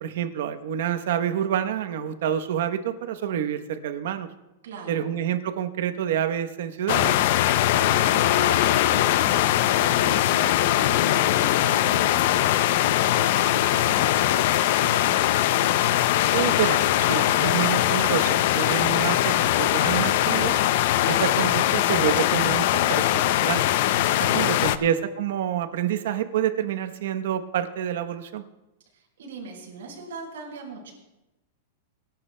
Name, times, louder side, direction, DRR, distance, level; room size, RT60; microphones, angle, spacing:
voice 1, 0.0-4.3 4.9-7.2 16.3-20.6 21.1-23.6 24.2-28.4, right 10 dB, 65° right, 9 dB, 0.9 m, -28 dB
voice 2, 4.6-5.1 7.5-12.7 13.0-15.7 24.2-24.9 28.9-30.9, right 4 dB, 85° right, -2 dB, 5.5 m, -40 dB
sound 1, 6.9-24.8, left 13 dB, 55° left, 0.5 m, -21 dB
25.5 x 11.5 x 2.2 m, 1.0 s
supercardioid pair, 160°, 0 cm